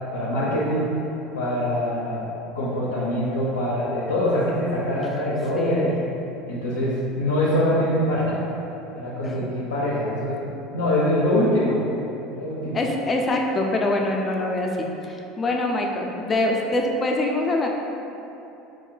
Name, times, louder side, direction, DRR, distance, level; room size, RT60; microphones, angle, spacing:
voice 1, 0.1-0.9 1.3-2.3 2.5-6.0 6.5-8.4 8.9-11.8 12.3-12.8, left 1 dB, 90° left, -6 dB, 0.4 m, -24 dB
voice 2, 5.6-5.9 9.2-9.4 12.7-17.7, left 2 dB, 30° left, 1 dB, 0.4 m, -24 dB
2.4 x 2.1 x 3.8 m, 3.0 s
hypercardioid pair, 90°, 0 cm